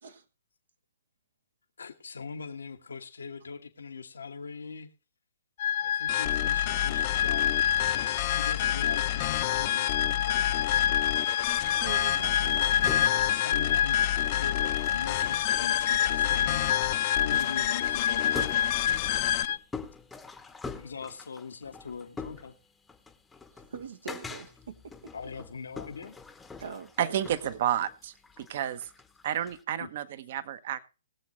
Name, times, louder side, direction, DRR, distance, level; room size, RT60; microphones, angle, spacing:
voice 1, 1.8-4.9 5.8-7.6 8.3-10.7 13.4-14.0 14.3-16.7 17.2-18.7 20.8-22.5 25.1-26.2 29.8-29.9, left 5 dB, 90° left, 1.4 m, -41 dB
sound 1, 5.6-19.6, left 9 dB, 55° left, 1.0 m, -27 dB
sound 2, 6.1-19.5, left 16 dB, 35° left, 0.6 m, -32 dB
sound 3, 11.0-29.6, left 4 dB, 5° left, 0.9 m, -46 dB
voice 2, 11.7-13.3 23.5-25.1 26.6-27.6, right 6 dB, 75° right, 1.3 m, -43 dB
voice 3, 27.0-28.8 29.2-30.8, right 11 dB, 50° right, 1.0 m, -31 dB
20.5 x 7.5 x 3.1 m
hypercardioid pair, 150°, 0 cm